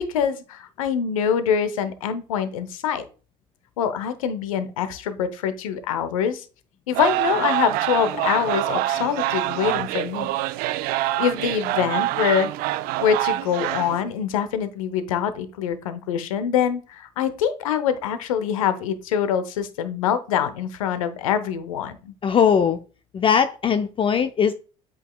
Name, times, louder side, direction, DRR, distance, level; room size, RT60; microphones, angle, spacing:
voice 1, 0.0-3.0 3.8-6.4 6.9-10.3 11.2-12.5 13.0-22.1, left 8 dB, 80° left, 0.7 m, -24 dB
sound 1, 6.9-14.0, right 15 dB, 60° right, 0.5 m, -25 dB
voice 2, 22.2-22.8 23.1-24.5, left 7 dB, 30° left, 0.5 m, -19 dB
8.2 x 5.4 x 2.2 m
hypercardioid pair, 65°, 17 cm